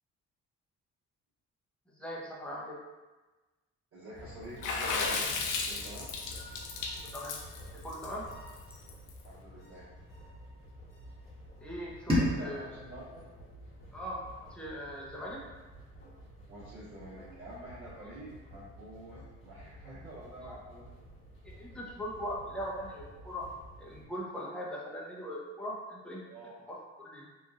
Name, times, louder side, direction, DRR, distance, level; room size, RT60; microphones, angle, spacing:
voice 1, 2.0-2.8 7.1-7.3 7.8-8.3 11.6-12.6 13.9-15.4 20.4-20.6 21.4-23.5 23.8-26.2 26.7-27.3, equal, 5° left, -4 dB, 0.6 m, -40 dB
voice 2, 3.9-5.3 5.7-6.1 9.2-9.9 12.1-13.2 16.5-20.9 26.2-26.6, right 1 dB, 65° right, -15 dB, 1.4 m, -47 dB
sound 1, 4.1-24.1, equal, 45° left, 1.0 m, -50 dB
Water / Splash splatter, 4.6-9.1, left 4 dB, 80° left, 0.5 m, -34 dB
sound 2, 12.1-15.0, left 1 dB, 20° right, 1.1 m, -34 dB
3.0 x 2.5 x 2.4 m, 1.2 s
cardioid pair, 90°, 30 cm